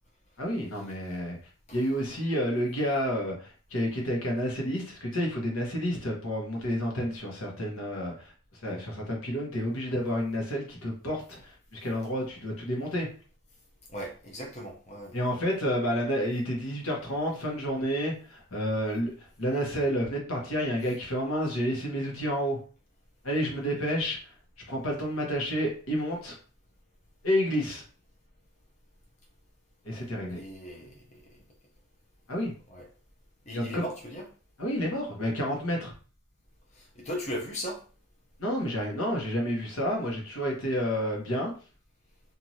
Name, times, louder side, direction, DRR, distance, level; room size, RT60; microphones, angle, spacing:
voice 1, 0.4-1.4 1.7-13.1 15.1-22.6 23.2-24.3 24.7-26.3 27.2-27.8 29.8-30.4 32.3-32.5 33.5-33.9 34.6-35.9 38.4-41.5, equal, 85° left, -1 dB, 1.1 m, -30 dB
voice 2, 13.9-15.1 29.9-30.0 30.3-31.4 32.7-32.8 33.5-34.2 36.7-37.8, equal, 35° left, -1 dB, 0.6 m, -38 dB
3.1 x 2.6 x 2.7 m, 0.39 s
head